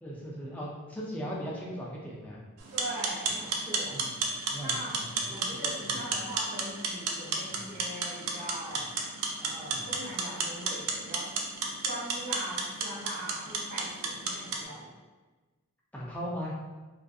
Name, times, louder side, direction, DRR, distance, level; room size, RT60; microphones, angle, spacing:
voice 1, 0.0-2.4 3.9-4.1 4.5-5.1 5.6-6.0 7.5-7.6 9.7-9.9 15.9-16.5, equal, 5° left, -4 dB, 0.3 m, -38 dB
sound 1, 2.6-14.6, right 4 dB, 80° right, 0.4 m, -33 dB
voice 2, 2.7-4.0 4.6-8.9 9.4-11.4 11.8-14.9, right 1 dB, 35° right, -7 dB, 0.6 m, -41 dB
2.5 x 2.4 x 2.3 m, 1.3 s
head